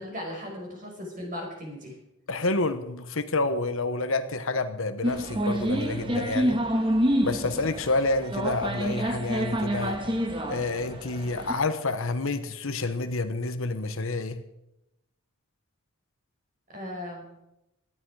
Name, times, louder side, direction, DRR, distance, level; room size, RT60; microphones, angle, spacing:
voice 1, 0.0-1.9 16.7-17.3, left 1 dB, 40° right, 1 dB, 5.3 m, -37 dB
voice 2, 2.3-6.6 7.2-10.0 10.5-14.4, left 3 dB, 70° left, 10 dB, 1.1 m, -28 dB
sound 1, 5.0-11.5, equal, 25° right, 1.4 m, -28 dB
18.0 x 12.5 x 4.8 m, 0.89 s
head